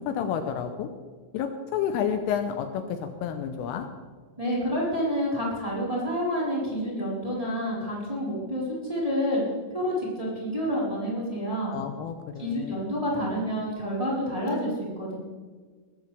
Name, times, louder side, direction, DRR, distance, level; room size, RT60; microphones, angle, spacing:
voice 1, 0.1-0.9 1.3-3.9 11.7-12.7, left 8 dB, 80° left, 7 dB, 3.2 m, -30 dB
voice 2, 4.4-9.4 9.7-11.7 12.4-15.2, equal, 5° right, -7 dB, 3.7 m, -28 dB
19.5 x 15.0 x 3.5 m, 1.5 s
omnidirectional pair, 6.0 m